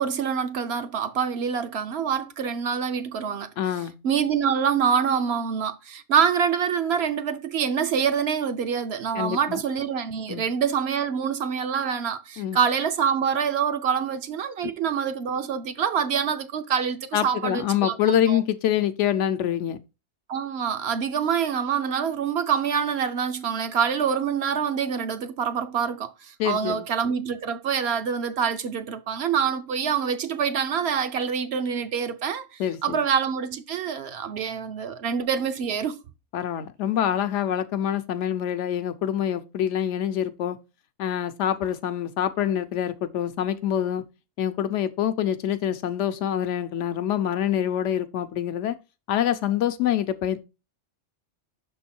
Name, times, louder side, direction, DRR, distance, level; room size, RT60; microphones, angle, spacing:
voice 1, 0.0-3.5 4.0-18.4 20.3-36.0, right 7 dB, 65° right, 0.8 m, -26 dB
voice 2, 3.6-3.9 9.1-9.6 10.3-10.4 12.4-12.6 17.1-19.8 26.4-26.9 32.6-33.0 36.3-40.6 41.0-44.0 44.4-48.8 49.1-50.4, left 10 dB, 75° left, 0.9 m, -25 dB
6.2 x 3.7 x 4.2 m
omnidirectional pair, 1.3 m